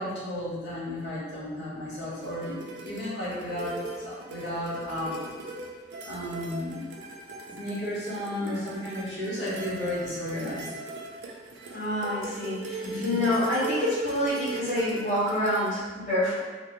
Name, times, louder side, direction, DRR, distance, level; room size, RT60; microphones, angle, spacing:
voice 1, 0.0-3.7 4.0-5.2 6.0-6.9 7.5-10.7 12.8-13.2, left 1 dB, 90° left, -11 dB, 1.1 m, -33 dB
Sad Mandolin, 2.1-15.8, right 3 dB, 85° right, 0.4 m, -40 dB
voice 2, 11.7-16.4, left 1 dB, 40° left, -12 dB, 1.3 m, -27 dB
3.0 x 2.0 x 2.9 m, 1.3 s
head